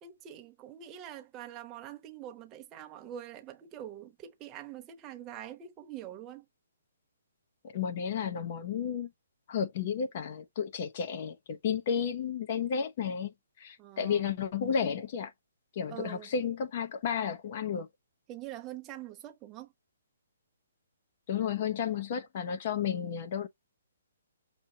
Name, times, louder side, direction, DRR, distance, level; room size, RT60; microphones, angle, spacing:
voice 1, 0.0-6.4 13.8-14.4 15.9-16.3 18.3-19.7, right 11 dB, 20° right, 0.9 m, -45 dB
voice 2, 7.6-9.1 9.5-13.3 13.6-15.3 15.8-17.9 21.3-23.5, left 7 dB, 45° left, 0.8 m, -32 dB
6.0 x 2.7 x 2.8 m
hypercardioid pair, 150°, 0 cm